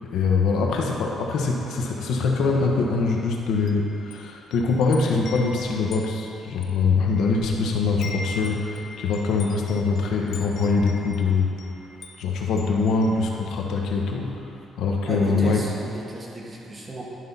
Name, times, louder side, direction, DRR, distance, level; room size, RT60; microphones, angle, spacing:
voice 1, 0.1-11.6 12.2-15.6, left 4 dB, 80° left, 0 dB, 1.0 m, -23 dB
Wind chime, 3.5-7.6 7.8-13.8, left 4 dB, 55° left, 0.7 m, -42 dB
voice 2, 15.1-17.0, right 1 dB, 25° right, -3 dB, 1.6 m, -34 dB
11.0 x 5.6 x 4.2 m, 2.8 s
cardioid pair, 120°, 0 cm